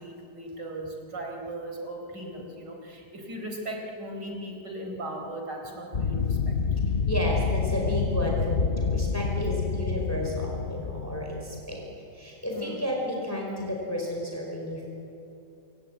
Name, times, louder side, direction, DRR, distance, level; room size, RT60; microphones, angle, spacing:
voice 1, 0.0-6.5 12.5-12.8, right 1 dB, 75° right, 2 dB, 5.0 m, -38 dB
sound 1, 5.9-11.7, left 5 dB, 45° left, 0.9 m, -28 dB
voice 2, 7.1-11.8 12.1-14.9, left 1 dB, 10° left, -1 dB, 4.8 m, -32 dB
27.5 x 22.5 x 9.4 m, 2.8 s
omnidirectional pair, 1.9 m